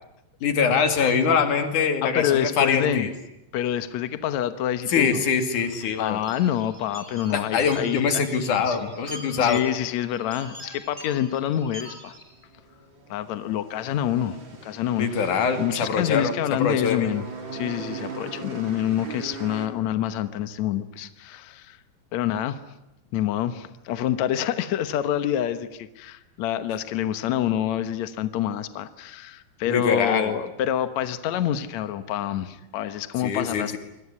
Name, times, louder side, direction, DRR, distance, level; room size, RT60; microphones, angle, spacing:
voice 1, 0.4-3.1 4.9-6.2 7.3-9.6 15.0-16.3 16.6-17.1 29.7-30.3 33.2-33.8, left 6 dB, 50° left, 7 dB, 3.6 m, -23 dB
voice 2, 2.0-3.1 3.5-5.2 6.0-8.2 8.5-8.9 9.4-12.2 13.1-15.3 15.6-17.2 17.5-21.8 22.1-22.6 23.1-33.8, left 11 dB, 80° left, 11 dB, 1.6 m, -27 dB
sound 1, 6.2-12.2, equal, 15° right, 7.4 m, -43 dB
sound 2, 12.1-19.7, right 4 dB, 30° right, 3.6 m, -40 dB
27.0 x 22.0 x 9.8 m, 0.90 s
omnidirectional pair, 4.9 m